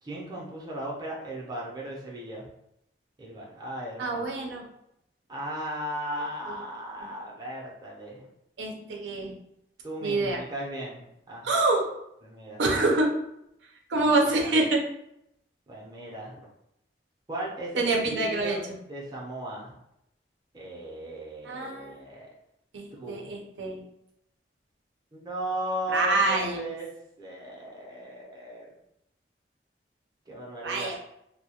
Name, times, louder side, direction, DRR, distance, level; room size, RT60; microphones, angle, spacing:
voice 1, 0.0-2.5 3.2-4.3 5.3-8.3 9.8-11.5 12.2-12.6 13.9-14.5 15.7-16.4 17.3-18.6 18.9-19.7 20.5-22.3 22.9-23.3 25.1-26.9 27.2-28.7 30.3-30.9, right 1 dB, 20° right, -4 dB, 0.5 m, -37 dB
voice 2, 4.0-4.6 8.6-9.3 10.0-10.4 11.4-11.8 12.6-13.1 13.9-14.8 17.8-18.6 21.4-22.0 22.7-23.8 25.9-26.7 30.6-31.0, right 2 dB, 90° right, 0 dB, 0.5 m, -26 dB
2.2 x 2.0 x 2.8 m, 0.79 s
head